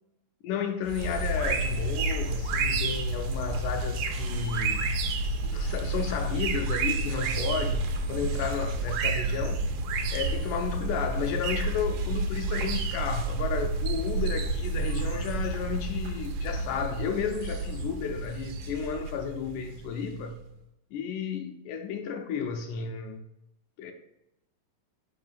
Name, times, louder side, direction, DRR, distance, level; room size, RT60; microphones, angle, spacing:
voice 1, 0.4-4.9 5.4-9.7 10.1-20.4 20.9-23.2 23.8-23.9, left 7 dB, 80° left, 1.9 m, -33 dB
sound 1, 0.9-20.3, right 3 dB, 85° right, 2.3 m, -30 dB
5.6 x 4.7 x 5.4 m
omnidirectional pair, 3.9 m